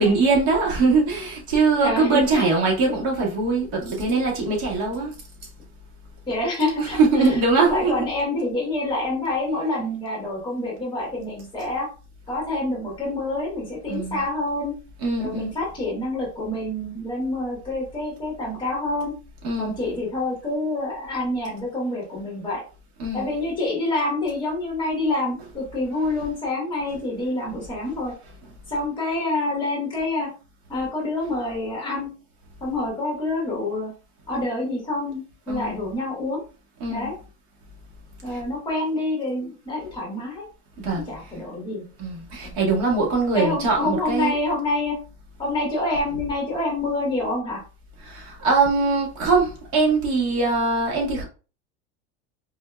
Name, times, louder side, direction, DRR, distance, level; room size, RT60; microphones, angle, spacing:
voice 1, 0.0-5.2 6.8-7.9 13.9-14.2 15.0-15.5 19.4-19.7 23.0-23.3 35.5-35.8 36.8-37.1 38.2-38.4 40.8-41.3 42.0-44.4 48.0-51.2, right 3 dB, 65° right, 1.8 m, -22 dB
voice 2, 1.8-2.5 6.3-7.0 7.6-11.9 12.3-14.7 15.2-19.1 19.6-22.6 23.1-28.1 28.7-30.3 30.7-32.1 32.6-33.9 34.3-36.4 36.9-37.2 38.2-40.5 40.9-41.8 42.4-42.5 43.3-45.0 45.4-47.6, left 2 dB, 15° left, 1.5 m, -27 dB
4.3 x 3.4 x 2.3 m
supercardioid pair, 165°, 35 cm